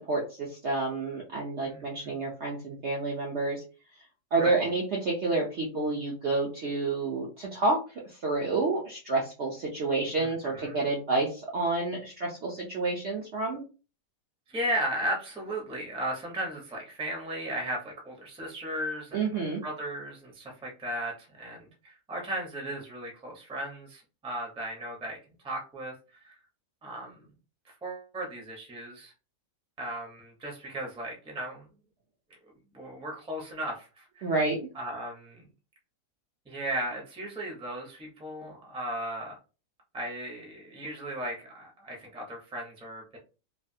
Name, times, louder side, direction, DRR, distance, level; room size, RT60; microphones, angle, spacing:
voice 1, 0.0-3.6 4.3-13.6 19.1-19.6 34.2-34.7, right 3 dB, 65° right, -2 dB, 0.7 m, -29 dB
voice 2, 1.6-2.2 4.4-4.6 10.2-10.9 14.5-25.2 25.4-26.3 26.8-27.3 27.6-29.1 29.8-31.7 32.7-34.3 34.7-35.4 36.5-39.4 39.9-43.2, right 1 dB, 5° right, -1 dB, 0.4 m, -36 dB
3.2 x 2.4 x 2.7 m, 0.33 s
omnidirectional pair, 1.9 m